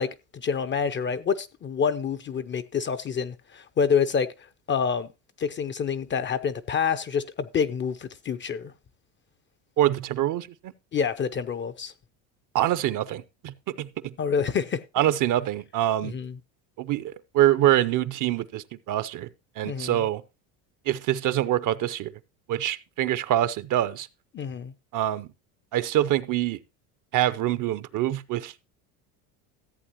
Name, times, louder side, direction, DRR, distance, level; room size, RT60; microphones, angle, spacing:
voice 1, 0.0-4.3 4.7-5.1 5.4-8.7 10.9-11.9 14.2-14.8 16.0-16.3 19.6-20.0 24.3-24.7, left 6 dB, 25° left, 0.5 m, -27 dB
voice 2, 9.8-10.7 12.5-14.1 15.0-16.1 16.8-19.3 19.6-20.2 20.9-22.1 22.5-24.1 24.9-25.3 25.7-26.6 27.1-28.5, right 13 dB, 45° right, 0.6 m, -25 dB
14.5 x 8.0 x 2.9 m
supercardioid pair, 90°, 47 cm